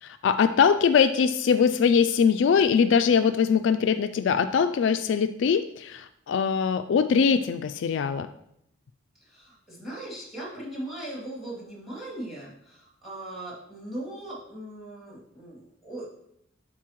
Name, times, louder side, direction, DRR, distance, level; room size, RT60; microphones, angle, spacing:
voice 1, 0.0-8.3, left 6 dB, 65° left, 9 dB, 0.3 m, -22 dB
voice 2, 9.2-16.1, right 1 dB, ahead, -4 dB, 2.6 m, -39 dB
12.0 x 4.3 x 3.0 m, 0.74 s
head